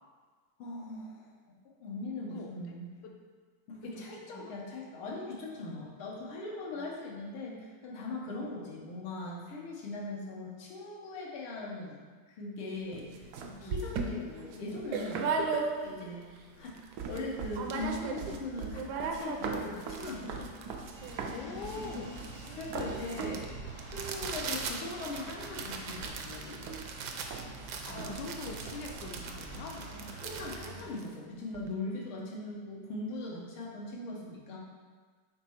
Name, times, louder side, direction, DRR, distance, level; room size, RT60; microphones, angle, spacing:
voice 1, 0.6-1.3 1.8-2.9 3.7-12.0 12.3-15.3 15.8-16.8 17.1-20.5 22.5-26.7 27.9-28.1 30.2-34.6, left 2 dB, 90° left, -3 dB, 2.0 m, -40 dB
voice 2, 3.9-4.5 6.7-6.9 8.3-8.4 13.6-13.8 15.3-15.4 16.6-16.7 21.2-22.3 27.4-29.9, left 4 dB, 65° left, 1 dB, 1.2 m, -44 dB
sound 1, 12.7-13.7 14.5-15.6 16.3-23.5 24.1-24.2 24.4-25.1 25.4-29.4, right 5 dB, 90° right, 0.8 m, -42 dB
sound 2, 13.2-13.3 13.7-16.1 16.5-16.6 16.8-17.2 17.5-18.4 18.6-31.7, right 4 dB, 70° right, 1.0 m, -38 dB
sound 3, 20.9-30.9, right 2 dB, 50° right, 0.6 m, -47 dB
6.0 x 4.1 x 4.4 m, 1.5 s
omnidirectional pair, 2.3 m